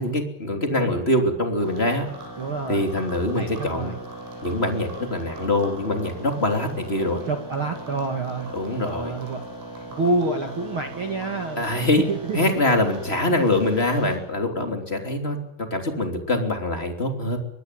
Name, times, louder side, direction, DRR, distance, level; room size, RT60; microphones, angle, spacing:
voice 1, 0.0-2.1 2.7-3.9 4.4-7.2 8.5-9.2 11.6-12.0 12.3-17.4, left 1 dB, 15° left, 4 dB, 2.4 m, -24 dB
sound 1, 1.6-14.2, right 1 dB, 80° right, 9.3 m, -39 dB
voice 2, 2.4-2.9 3.3-4.0 7.3-8.5 8.8-9.4 9.9-11.7 12.1-12.4, right 3 dB, 55° right, 5 dB, 1.4 m, -27 dB
24.5 x 20.0 x 7.7 m, 0.84 s
omnidirectional pair, 5.6 m